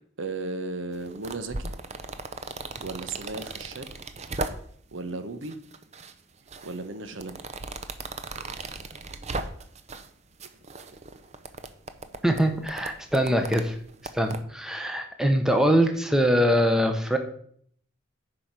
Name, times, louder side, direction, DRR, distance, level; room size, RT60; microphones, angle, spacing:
voice 1, 0.2-1.7 2.8-4.0 4.9-5.6 6.6-7.4 14.2-14.4, right 3 dB, 75° right, 9 dB, 1.0 m, -35 dB
sound 1, 0.9-4.9 5.4-6.1 6.5-10.1 10.4-14.4, right 3 dB, 35° right, 0.6 m, -37 dB
voice 2, 12.2-13.8 14.1-17.2, equal, 5° right, 5 dB, 0.9 m, -23 dB
9.8 x 5.0 x 6.0 m, 0.63 s
head